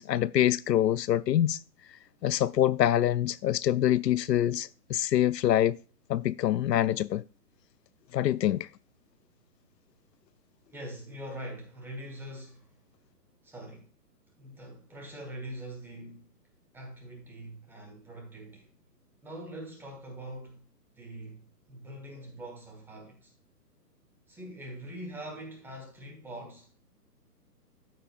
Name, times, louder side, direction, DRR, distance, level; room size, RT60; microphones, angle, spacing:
voice 1, 0.0-1.6 2.2-5.8 6.1-7.2 8.1-8.7, left 12 dB, 80° left, 0.6 m, -25 dB
voice 2, 10.7-12.8 13.4-13.9 14.4-16.3 16.7-18.7 19.2-20.6 20.9-23.3 24.3-26.7, right 1 dB, 5° right, 1.4 m, -43 dB
13.5 x 5.2 x 2.4 m
hypercardioid pair, 145°, 49 cm